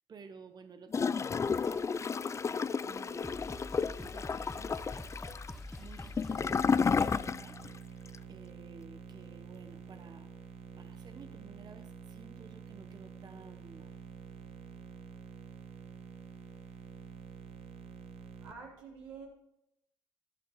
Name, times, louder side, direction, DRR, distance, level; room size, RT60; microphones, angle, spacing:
voice 1, 0.1-2.2 2.5-5.1 5.8-7.6 8.3-10.3 10.8-14.0, right 5 dB, 40° right, 0.7 m, -54 dB
Gurgling / Toilet flush, 0.9-7.8 8.1-8.2, left 5 dB, 25° left, 0.3 m, -32 dB
sound 1, 1.4-2.1 2.8-2.9 3.2-7.4, left 1 dB, 5° left, 1.1 m, -45 dB
sound 2, 7.0-18.5, right 6 dB, 65° right, 1.2 m, -48 dB
voice 2, 18.4-19.3, right 5 dB, 85° right, 2.8 m, -47 dB
12.5 x 11.5 x 3.1 m
hypercardioid pair, 55°, 11 cm